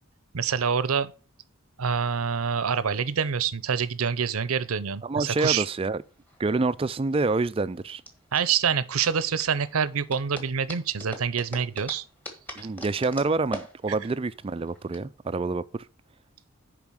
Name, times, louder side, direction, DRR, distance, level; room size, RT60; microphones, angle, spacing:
voice 1, 0.3-1.1 1.8-5.7 8.3-12.0 13.9-14.0, right 6 dB, 90° right, 0.7 m, -26 dB
voice 2, 5.0-6.0 6.4-8.0 12.6-15.8, right 3 dB, 25° right, 0.3 m, -27 dB
sound 1, 6.1-15.0, equal, 10° left, 1.4 m, -42 dB
7.1 x 5.0 x 6.4 m
head